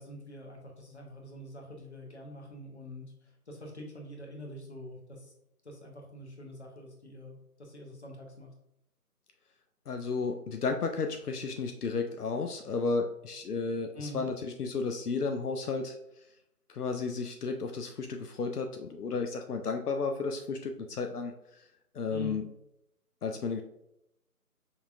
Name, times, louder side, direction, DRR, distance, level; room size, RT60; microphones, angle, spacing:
voice 1, 0.0-5.3 5.6-8.5 13.9-14.2 22.1-22.4, left 1 dB, 45° left, 1 dB, 0.9 m, -45 dB
voice 2, 9.9-16.4 16.7-22.5 23.2-23.6, left 4 dB, 80° left, 5 dB, 0.5 m, -33 dB
5.4 x 2.4 x 2.4 m, 0.83 s
figure-of-eight pair, 160°, 46 cm